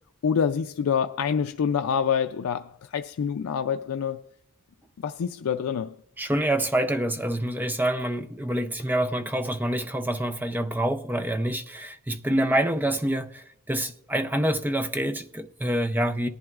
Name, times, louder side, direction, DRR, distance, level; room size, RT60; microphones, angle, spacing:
voice 1, 0.2-4.3 5.0-6.0, left 7 dB, 85° left, 0.4 m, -26 dB
voice 2, 6.2-16.3, right 1 dB, 10° right, 0.4 m, -26 dB
19.0 x 11.0 x 2.4 m
head